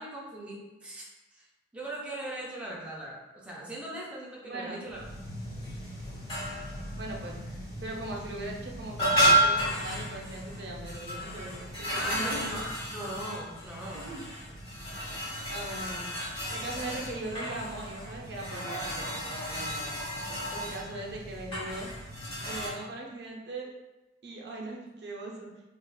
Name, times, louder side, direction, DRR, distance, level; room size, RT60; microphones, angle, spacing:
voice 1, 0.0-1.5 1.7-5.1 11.9-14.1, right 1 dB, 5° right, -5 dB, 0.4 m, -40 dB
voice 2, 4.4-4.8 6.9-7.4 7.8-12.4 13.9-14.2 15.5-20.0 20.5-21.9 22.5-23.7 24.2-25.5, right 2 dB, 60° right, -1 dB, 0.5 m, -40 dB
sound 1, 4.9-22.7, right 1 dB, 35° left, 1.3 m, -32 dB
3.4 x 2.4 x 2.3 m, 1.0 s
head